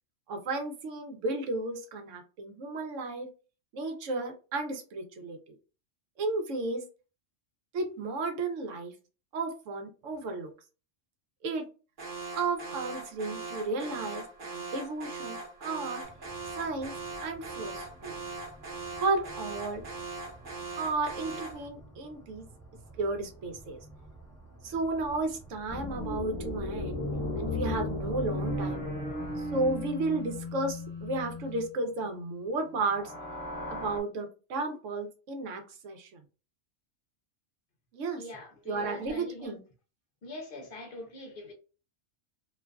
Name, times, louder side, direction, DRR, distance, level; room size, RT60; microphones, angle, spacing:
voice 1, 0.3-3.3 3.7-5.6 6.2-6.8 7.7-8.9 9.3-10.5 11.4-11.6 12.4-16.0 16.6-16.9 17.2-18.2 19.0-19.8 20.8-22.5 23.0-23.8 24.6-27.1 27.4-28.9 29.4-33.1 33.7-36.2 37.9-38.2 38.7-39.6, right 3 dB, 85° right, 1.0 m, -33 dB
Alarm, 12.0-21.7, right 3 dB, 50° right, 1.0 m, -40 dB
sound 1, 16.0-29.8, right 2 dB, 15° right, 0.6 m, -52 dB
sound 2, 25.7-31.7 32.7-34.0, left 2 dB, 20° left, 0.9 m, -35 dB
voice 2, 38.2-39.6 40.2-41.5, left 1 dB, 55° left, 0.7 m, -43 dB
2.5 x 2.4 x 2.2 m
omnidirectional pair, 1.2 m